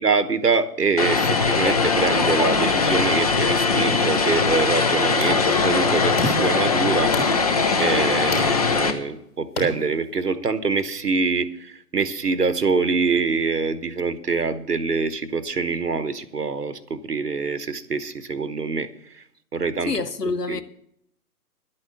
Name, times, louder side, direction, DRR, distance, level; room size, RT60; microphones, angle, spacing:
voice 1, 0.0-18.9 19.5-20.6, right 4 dB, 80° right, 1.1 m, -25 dB
Vehicle, 1.0-8.9, left 4 dB, 25° left, 0.7 m, -21 dB
sound 1, 4.7-10.3, left 1 dB, 40° left, 3.4 m, -34 dB
voice 2, 19.9-20.6, left 4 dB, 85° left, 0.8 m, -26 dB
11.5 x 8.7 x 6.7 m
figure-of-eight pair, 135°, 47 cm